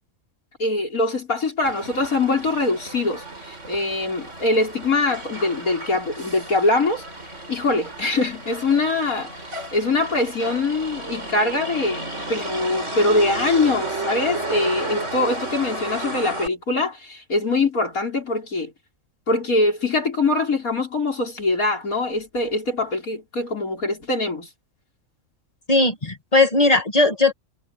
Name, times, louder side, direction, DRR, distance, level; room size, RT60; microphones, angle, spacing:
voice 1, 0.6-7.0 7.5-9.3 9.7-18.7 19.3-24.5, left 2 dB, 85° left, 5.7 m, -23 dB
Motor vehicle (road), 1.6-16.5, right 2 dB, 55° right, 5.2 m, -33 dB
voice 2, 25.7-27.3, left 2 dB, 25° left, 1.8 m, -18 dB
omnidirectional pair, 1.5 m